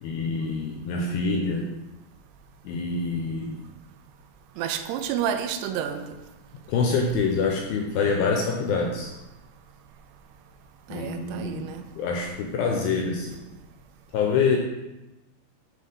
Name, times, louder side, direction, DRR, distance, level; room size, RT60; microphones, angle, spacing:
voice 1, 0.0-1.7 2.6-3.6 6.7-9.1 10.9-11.7 12.0-13.4 14.1-14.6, left 4 dB, 85° left, 2.2 m, -26 dB
voice 2, 4.6-6.2 10.9-11.8, right 9 dB, 85° right, 2.7 m, -30 dB
7.5 x 3.6 x 5.3 m
omnidirectional pair, 4.7 m